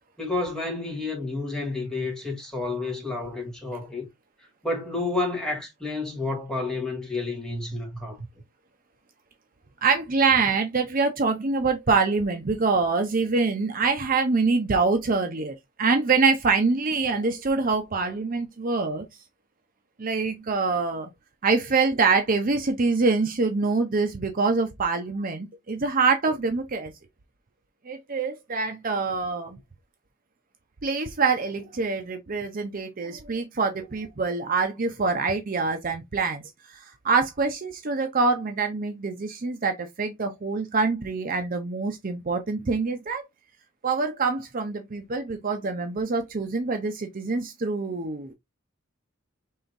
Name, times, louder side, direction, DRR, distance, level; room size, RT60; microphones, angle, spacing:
voice 1, 0.2-4.1 4.6-8.2, left 3 dB, 5° left, 1.8 m, -30 dB
voice 2, 9.8-19.1 20.0-21.1 21.4-26.9 27.9-29.6 30.8-36.4 37.0-43.2 43.8-48.3, right 4 dB, 45° right, 0.6 m, -25 dB
5.6 x 3.4 x 2.6 m
head